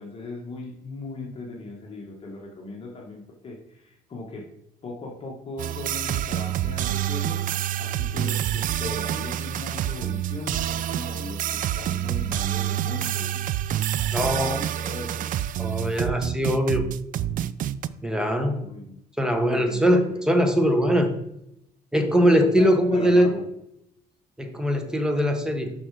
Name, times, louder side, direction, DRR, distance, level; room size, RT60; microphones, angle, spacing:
voice 1, 0.0-4.5 4.8-7.4 7.8-13.6 14.0-15.3 18.6-19.0 19.4-20.3 22.2-23.4, left 2 dB, 35° left, -2 dB, 1.6 m, -38 dB
sound 1, 5.6-17.9, right 12 dB, 55° right, 0.4 m, -27 dB
voice 2, 14.1-14.6 15.6-16.9 18.0-18.6 19.2-21.1 21.9-23.3 24.4-25.7, equal, 5° right, 5 dB, 1.2 m, -21 dB
6.0 x 5.8 x 4.9 m, 0.79 s
cardioid pair, 110°, 17 cm